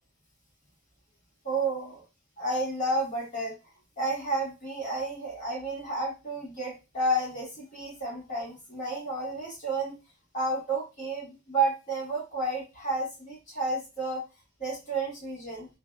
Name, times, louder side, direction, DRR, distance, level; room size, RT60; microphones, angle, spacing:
voice 1, 1.4-2.0 2.4-3.6 4.0-9.9 10.3-14.2 14.6-15.7, right 2 dB, 40° left, -5 dB, 1.3 m, -31 dB
2.5 x 2.2 x 2.2 m, 0.27 s
head